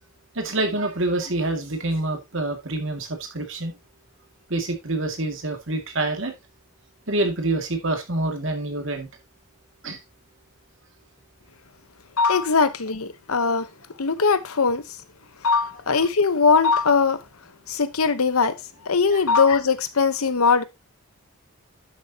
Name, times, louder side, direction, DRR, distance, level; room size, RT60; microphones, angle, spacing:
voice 1, 0.4-3.1 3.3-3.7 4.5-6.3 7.1-9.1 9.8-10.0 19.1-19.2, right 2 dB, 60° right, 2.2 m, -26 dB
voice 2, 12.2-13.7 14.0-14.8 15.4-17.2 17.7-18.6 18.9-20.6, left 5 dB, 85° left, 1.0 m, -20 dB
11.5 x 6.7 x 2.9 m
head